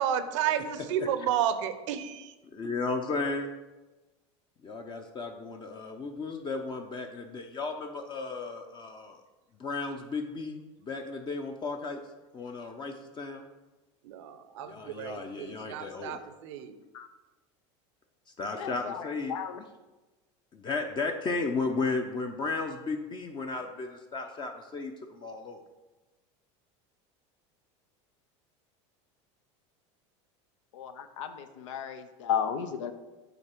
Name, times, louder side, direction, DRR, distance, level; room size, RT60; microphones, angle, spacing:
voice 1, 0.0-2.3 14.0-16.8, right 9 dB, 75° right, 11 dB, 0.7 m, -31 dB
voice 2, 2.5-3.5 4.6-9.2 9.6-12.0 12.3-13.4 14.6-16.2 18.4-19.3 20.5-25.6, left 3 dB, 30° left, 4 dB, 0.6 m, -34 dB
voice 3, 18.6-19.0 19.3-19.6 30.7-32.9, left 8 dB, 85° left, 8 dB, 0.5 m, -34 dB
8.0 x 3.7 x 4.4 m, 1.1 s
supercardioid pair, 105°, 16 cm